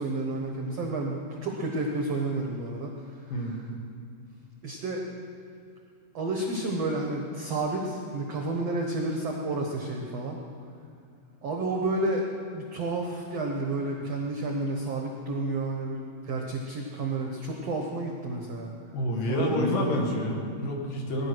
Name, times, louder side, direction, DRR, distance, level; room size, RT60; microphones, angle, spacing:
voice 1, 0.0-3.6 4.6-5.0 6.1-10.4 11.4-12.3 12.5-18.7 19.3-20.1, right 2 dB, 70° right, 1 dB, 1.5 m, -31 dB
voice 2, 18.9-21.3, left 1 dB, 60° left, 0 dB, 3.3 m, -28 dB
18.5 x 11.0 x 6.2 m, 2.5 s
omnidirectional pair, 4.6 m